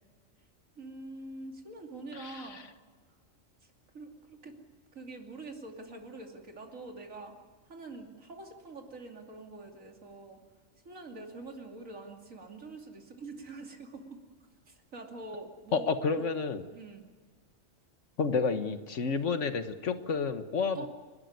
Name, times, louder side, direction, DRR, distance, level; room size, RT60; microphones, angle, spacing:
voice 1, 0.8-2.7 3.6-4.6 4.9-7.3 7.7-10.4 10.8-14.2 14.7-16.3 16.7-17.1 20.7-20.9, right 2 dB, 75° right, 2 dB, 3.1 m, -45 dB
voice 2, 2.1-2.6 15.7-16.7 18.2-20.9, left 4 dB, 65° left, 9 dB, 1.6 m, -30 dB
29.5 x 12.5 x 9.5 m, 1.4 s
omnidirectional pair, 1.4 m